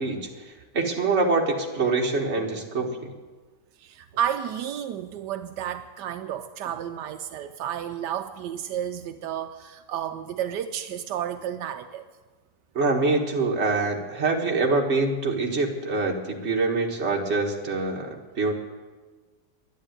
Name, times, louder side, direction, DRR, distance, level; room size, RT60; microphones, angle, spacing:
voice 1, 0.0-3.1 12.8-18.5, right 3 dB, 40° right, 1 dB, 1.8 m, -25 dB
voice 2, 3.8-12.0, right 10 dB, 85° right, 8 dB, 1.2 m, -32 dB
11.0 x 10.0 x 8.9 m, 1.3 s
omnidirectional pair, 1.8 m